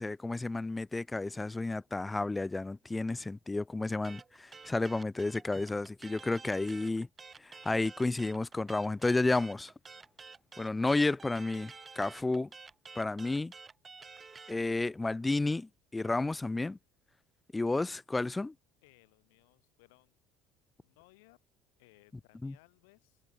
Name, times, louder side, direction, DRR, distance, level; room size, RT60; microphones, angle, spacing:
voice 1, 0.0-7.1 7.4-9.7 10.6-12.5 13.0-13.5 14.5-16.8 17.5-18.5 22.4-22.6, left 2 dB, 15° left, 0.3 m, -31 dB
sound 1, 4.0-14.6, right 5 dB, 25° right, 0.6 m, -50 dB
voice 2, 18.8-20.1 20.8-21.4 21.8-23.2, left 26 dB, 85° left, 4.4 m, -63 dB
supercardioid pair, 90°, 0 cm